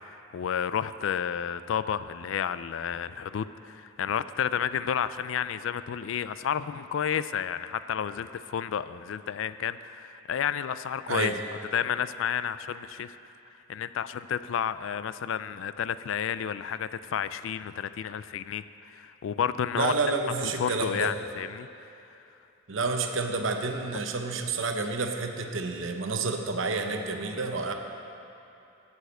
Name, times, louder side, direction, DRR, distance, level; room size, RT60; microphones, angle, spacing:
voice 1, 0.3-11.3 11.7-13.2 13.7-18.6 18.9-19.9 20.4-21.7 23.9-24.0, left 8 dB, 70° left, 14 dB, 0.3 m, -31 dB
voice 2, 19.7-21.1 22.7-27.7, right 3 dB, 70° right, 4 dB, 0.8 m, -29 dB
8.4 x 7.1 x 7.9 m, 2.8 s
head